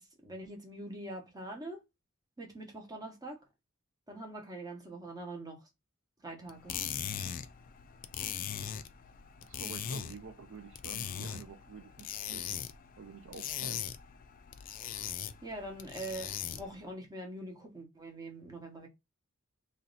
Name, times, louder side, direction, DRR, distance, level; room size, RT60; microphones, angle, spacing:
voice 1, 0.0-1.8 2.4-3.4 4.1-5.7 6.2-6.8 15.4-18.9, right 1 dB, 20° right, 1.0 m, -43 dB
sound 1, 6.5-16.8, left 9 dB, 40° left, 0.3 m, -40 dB
voice 2, 9.4-12.6 13.0-13.9, right 5 dB, 60° right, 0.4 m, -49 dB
3.1 x 2.8 x 3.9 m
head